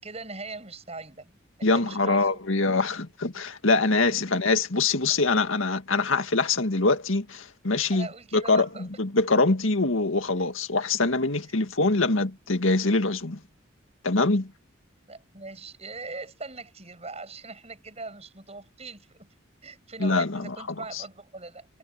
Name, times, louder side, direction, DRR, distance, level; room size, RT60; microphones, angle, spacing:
voice 1, 0.0-2.4 4.1-4.2 7.9-8.9 9.3-9.4 15.1-19.3 19.6-21.7, right 3 dB, 30° right, 7.8 m, -41 dB
voice 2, 1.6-8.1 8.3-13.4 14.0-14.5 20.0-20.6 20.9-21.0, left 3 dB, 85° left, 2.0 m, -24 dB
head